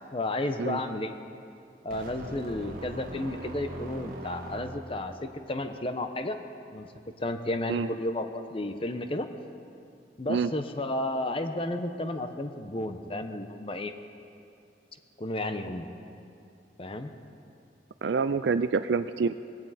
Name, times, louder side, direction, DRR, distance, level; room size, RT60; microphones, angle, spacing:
voice 1, 0.1-1.1 1.8-6.4 6.7-6.9 7.2-9.3 10.2-13.9 15.2-15.9 16.8-17.1, left 1 dB, 30° left, 7 dB, 0.9 m, -32 dB
sound 1, 1.9-5.1, right 1 dB, 55° right, 1.5 m, -41 dB
voice 2, 18.0-19.3, right 5 dB, 75° right, 12 dB, 0.4 m, -26 dB
20.5 x 17.0 x 4.2 m, 2.6 s
head